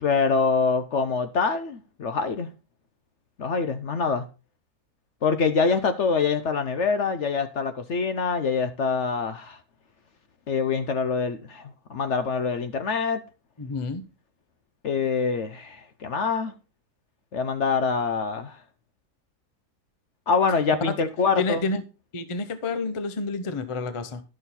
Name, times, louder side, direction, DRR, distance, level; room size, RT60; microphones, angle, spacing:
voice 1, 0.0-2.5 3.4-4.2 5.2-9.6 10.5-13.2 14.8-16.5 17.3-18.6 20.3-21.6, left 5 dB, 55° left, 0.9 m, -25 dB
voice 2, 13.6-14.0 20.9-21.0 21.4-21.8 22.1-24.2, left 3 dB, 30° left, 0.6 m, -29 dB
11.0 x 6.4 x 4.2 m
omnidirectional pair, 1.7 m